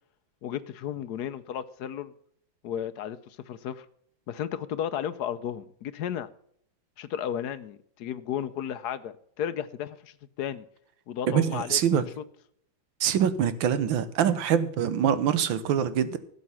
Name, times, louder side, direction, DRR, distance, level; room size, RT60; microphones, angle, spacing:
voice 1, 0.4-2.1 2.6-3.9 4.3-6.3 7.0-10.7 11.1-12.2, left 9 dB, 65° left, 1.2 m, -34 dB
voice 2, 11.3-12.1 13.0-16.2, right 8 dB, 75° right, 1.7 m, -24 dB
12.5 x 8.3 x 5.6 m
omnidirectional pair, 2.2 m